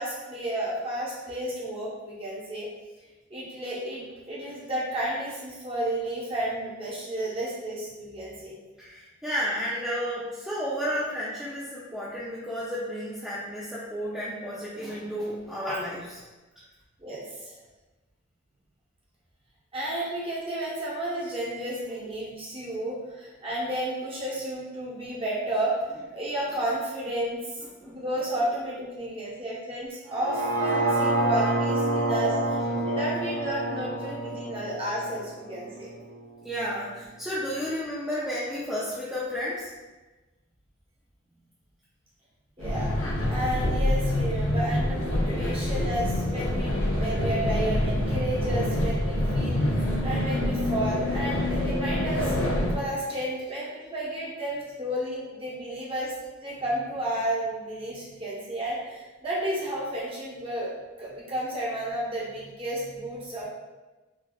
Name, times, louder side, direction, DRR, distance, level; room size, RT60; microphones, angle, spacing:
voice 1, 0.0-2.7 3.3-8.6 17.0-17.6 19.7-25.8 26.1-27.6 27.8-36.0 42.6-52.3 52.7-56.1 56.4-60.7 61.0-63.4, right 1 dB, 25° right, -7 dB, 0.9 m, -32 dB
voice 2, 8.8-16.2 27.8-27.9 32.8-32.9 36.4-39.7, equal, 5° right, -9 dB, 0.4 m, -32 dB
sound 1, 30.1-36.2 36.7-36.8, right 2 dB, 80° right, 0.5 m, -28 dB
sound 2, 42.6-52.7, left 1 dB, 90° left, 0.7 m, -26 dB
3.9 x 2.4 x 2.2 m, 1.2 s
head